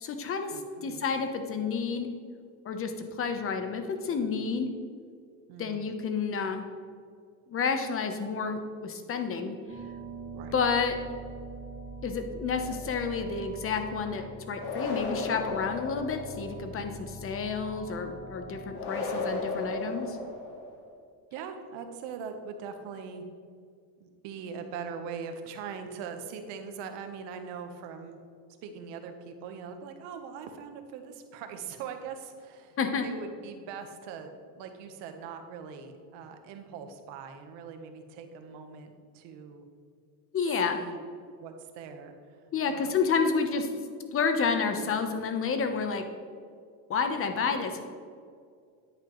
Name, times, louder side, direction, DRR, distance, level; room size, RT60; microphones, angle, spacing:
voice 1, 0.0-0.5 0.8-2.1 2.6-4.7 5.6-6.7 7.5-9.6 10.5-11.0 12.0-20.2 32.8-33.1 40.3-40.8 42.5-43.7 44.1-46.0 46.9-47.8, left 5 dB, 30° left, 6 dB, 1.0 m, -30 dB
voice 2, 0.5-1.0 5.5-5.8 10.3-10.6 21.3-23.2 24.0-28.2 28.6-39.6 40.6-41.0 41.4-42.4 42.7-42.9, right 6 dB, 75° right, 6 dB, 1.3 m, -41 dB
sound 1, 9.7-18.8, right 2 dB, 30° right, 1.9 m, -43 dB
sound 2, 14.6-16.6 18.7-20.8, left 3 dB, 65° left, 2.0 m, -34 dB
10.0 x 8.9 x 3.2 m, 2.2 s
cardioid pair, 140°, 42 cm